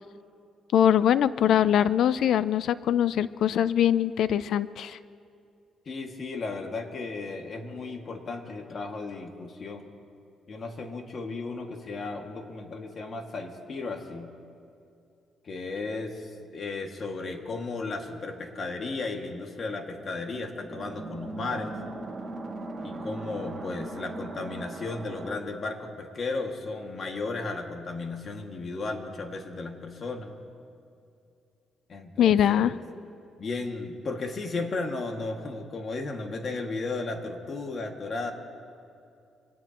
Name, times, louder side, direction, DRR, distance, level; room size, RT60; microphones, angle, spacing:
voice 1, 0.7-5.0 32.2-32.7, left 10 dB, 75° left, 16 dB, 0.4 m, -22 dB
voice 2, 5.9-9.8 10.5-14.3 15.4-21.7 22.8-30.4 31.9-32.8 33.4-38.3, left 3 dB, 45° left, 3 dB, 2.0 m, -35 dB
sound 1, 18.6-25.4, right 2 dB, 30° right, 2.3 m, -40 dB
25.5 x 18.0 x 3.0 m, 2.5 s
cardioid pair, 90°, 0 cm